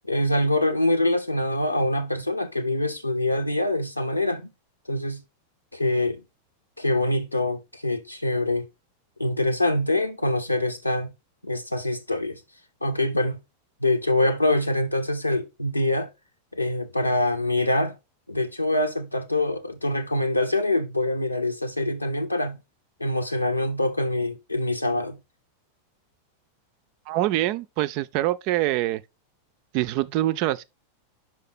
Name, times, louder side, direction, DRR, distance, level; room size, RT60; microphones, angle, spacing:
voice 1, 0.0-4.5 4.9-5.2 5.7-6.2 6.8-8.7 9.2-11.1 11.4-12.4 12.8-13.4 13.8-16.1 16.5-18.0 18.3-22.6 23.0-25.2, left 1 dB, 85° left, 0.9 m, -24 dB
voice 2, 27.1-29.0 29.7-30.6, right 15 dB, 45° right, 0.4 m, -24 dB
5.7 x 4.9 x 4.1 m
figure-of-eight pair, 90°, 0 cm